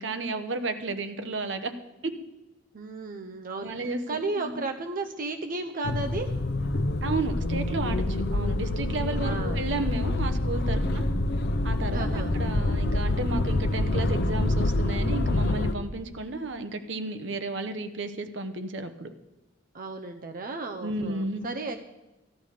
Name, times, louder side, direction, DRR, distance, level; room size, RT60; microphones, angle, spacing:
voice 1, 0.0-1.7 2.0-2.1 3.6-4.0 4.4-4.6 7.0-11.0 11.6-19.1 20.8-21.5, right 2 dB, 70° right, 9 dB, 1.0 m, -33 dB
voice 2, 2.7-6.3 9.2-9.6 11.9-12.3 19.7-21.8, right 3 dB, 50° right, 5 dB, 0.7 m, -34 dB
sound 1, 5.8-15.7, left 1 dB, 60° left, 0.7 m, -26 dB
15.0 x 11.5 x 5.0 m, 1.0 s
head